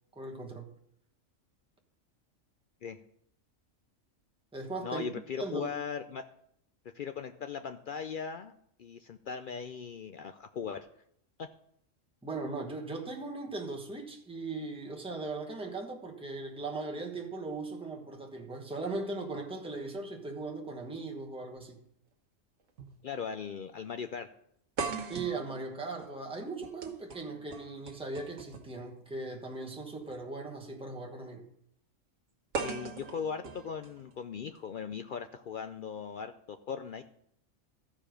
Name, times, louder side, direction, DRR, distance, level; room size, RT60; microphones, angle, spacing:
voice 1, 0.1-0.8 4.5-5.1 5.4-5.8 12.2-21.9 25.1-31.5, right 3 dB, 5° right, 1.1 m, -39 dB
voice 2, 4.8-6.2 6.9-8.5 8.8-10.9 11.4-11.5 23.0-24.3 32.6-37.0, left 6 dB, 65° left, 0.5 m, -38 dB
sound 1, 21.6-21.7 22.8-23.0 23.3-23.4 24.8-28.8 30.0-30.2 32.5-34.6, right 5 dB, 80° right, 1.5 m, -40 dB
14.0 x 5.0 x 5.0 m
omnidirectional pair, 1.3 m